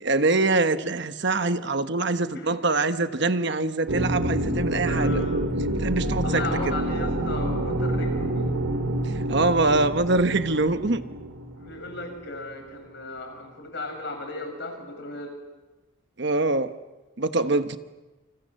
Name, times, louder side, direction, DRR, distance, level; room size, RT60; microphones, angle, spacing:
voice 1, 0.1-5.2 5.8-6.7 9.1-11.0 16.2-16.7 17.2-17.8, right 2 dB, 55° right, 9 dB, 1.1 m, -24 dB
sound 1, 3.9-12.4, right 1 dB, 85° right, 3.7 m, -27 dB
voice 2, 4.9-5.4 6.2-8.6 11.6-15.3, left 2 dB, 55° left, 3 dB, 7.2 m, -35 dB
29.0 x 26.5 x 7.7 m, 1.1 s
head